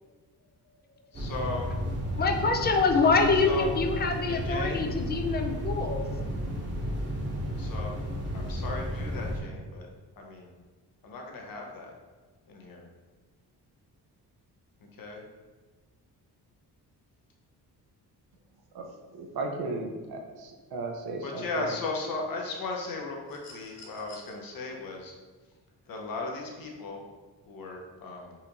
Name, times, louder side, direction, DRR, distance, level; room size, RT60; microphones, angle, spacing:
voice 1, 1.1-1.7 3.4-3.7 4.3-4.9 7.6-7.9 8.3-9.9 10.2-10.5 11.0-11.9 12.5-12.8 15.0-15.2 21.2-25.1 25.9-27.0 27.5-28.4, left 3 dB, 55° left, 0 dB, 0.9 m, -36 dB
sound 1, 1.1-9.4, equal, 25° right, 1.0 m, -33 dB
voice 2, 2.2-6.1, left 4 dB, 25° left, 4 dB, 0.5 m, -25 dB
voice 3, 18.7-21.7, right 3 dB, 65° right, 3 dB, 0.7 m, -36 dB
sound 2, 23.3-24.3 25.8-25.9, left 4 dB, 90° left, 0.8 m, -50 dB
4.2 x 2.5 x 2.9 m, 1.3 s
cardioid pair, 70°, 41 cm